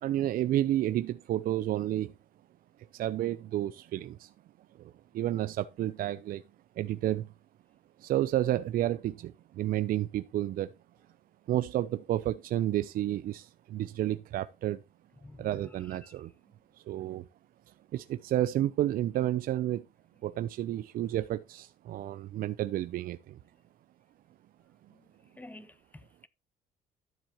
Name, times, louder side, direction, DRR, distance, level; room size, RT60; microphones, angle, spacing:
voice 1, 0.0-2.1 2.9-4.3 4.8-6.4 6.8-7.3 8.0-10.7 11.5-14.8 15.4-16.3 16.7-17.2 17.7-19.9 20.2-23.4, right 13 dB, 60° right, 0.5 m, -31 dB
voice 2, 15.2-16.1 24.9-25.1 25.3-26.3, left 1 dB, 10° left, 0.9 m, -51 dB
12.0 x 7.4 x 2.9 m
cardioid pair, 110°, 17 cm